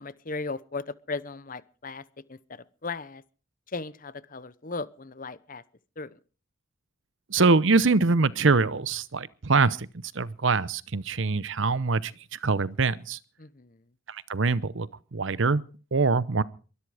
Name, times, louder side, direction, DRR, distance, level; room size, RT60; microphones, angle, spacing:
voice 1, 0.0-3.2 3.7-5.6 6.0-6.2 13.4-13.8, left 3 dB, 40° left, 0.9 m, -37 dB
voice 2, 7.3-9.9 10.1-13.2 14.1-15.6 15.9-16.4, right 4 dB, 65° right, 0.8 m, -24 dB
22.5 x 13.0 x 4.9 m
head